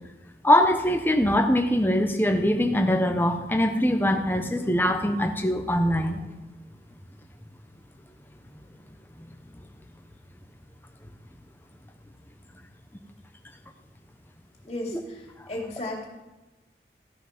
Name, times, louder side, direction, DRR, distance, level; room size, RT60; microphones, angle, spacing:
voice 1, 0.4-6.2, left 1 dB, 10° left, 5 dB, 0.9 m, -22 dB
voice 2, 14.6-16.1, left 1 dB, 35° left, -1 dB, 2.7 m, -35 dB
14.5 x 6.0 x 5.9 m, 1.1 s
head